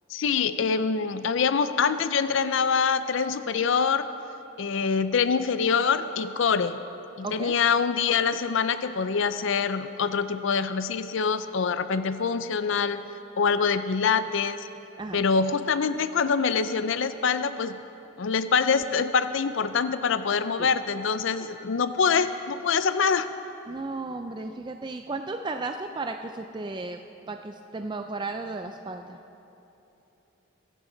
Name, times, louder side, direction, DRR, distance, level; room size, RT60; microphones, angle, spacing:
voice 1, 0.1-4.1 4.6-6.8 7.2-13.0 13.4-14.7 15.1-17.8 18.2-23.3, left 5 dB, 65° left, 12 dB, 0.5 m, -25 dB
voice 2, 7.2-7.5 15.0-15.2 20.6-20.7 23.7-27.0 27.3-29.2, right 3 dB, 20° right, 6 dB, 0.3 m, -34 dB
23.0 x 11.0 x 3.9 m, 3.0 s
head